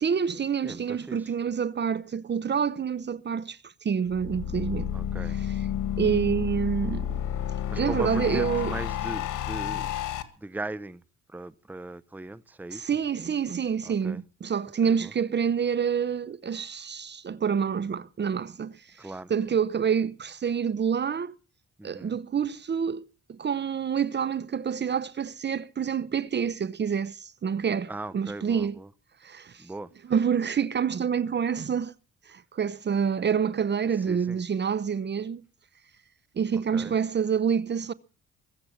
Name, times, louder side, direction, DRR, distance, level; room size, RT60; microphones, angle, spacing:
voice 1, 0.0-4.9 6.0-7.1 7.8-8.7 12.7-18.7 19.3-21.4 21.8-28.8 29.2-29.6 30.1-31.9 32.3-35.4 36.4-37.9, right 7 dB, 35° right, 0.8 m, -27 dB
voice 2, 0.6-1.3 4.9-5.4 7.7-9.9 10.4-11.0 11.3-12.9 13.8-14.2 14.8-15.1 19.0-19.3 21.8-22.2 27.9-28.9 29.6-29.9 34.1-34.4 36.7-37.0, right 2 dB, 5° right, 0.7 m, -38 dB
sound 1, 4.1-10.2, left 10 dB, 85° left, 1.8 m, -31 dB
23.0 x 7.8 x 7.1 m
cardioid pair, 90°, 30 cm